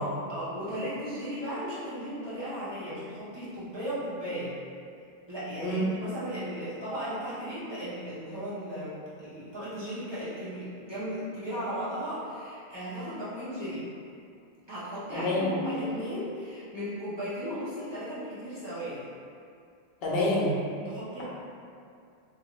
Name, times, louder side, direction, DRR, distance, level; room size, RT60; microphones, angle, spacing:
voice 1, 0.3-4.5 5.3-13.9 14.7-19.1 20.8-21.2, equal, 25° right, -12 dB, 0.8 m, -36 dB
voice 2, 15.1-15.6 20.0-20.6, left 1 dB, 65° left, -5 dB, 0.8 m, -27 dB
2.6 x 2.3 x 3.1 m, 2.4 s
omnidirectional pair, 1.1 m